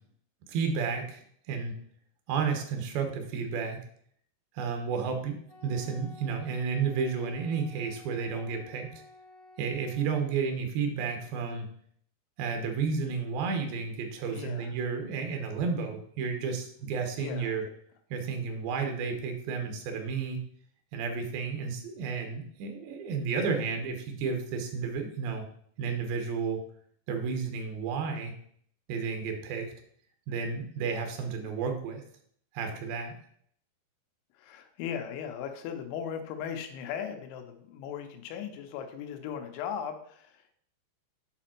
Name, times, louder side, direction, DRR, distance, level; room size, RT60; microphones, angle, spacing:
voice 1, 0.5-1.8 2.3-3.8 4.6-8.9 9.6-11.7 12.4-17.6 18.1-20.4 20.9-25.5 25.8-26.6 27.1-28.3 28.9-29.7 30.3-32.0 32.5-33.2, right 5 dB, 70° right, 4 dB, 2.5 m, -32 dB
Wind instrument woodwind instrument, 5.5-10.4, left 2 dB, 55° left, 1.4 m, -53 dB
voice 2, 14.3-14.7 17.2-17.6 34.4-40.5, left 8 dB, 90° left, 6 dB, 3.1 m, -38 dB
6.7 x 5.0 x 4.4 m, 0.63 s
omnidirectional pair, 5.2 m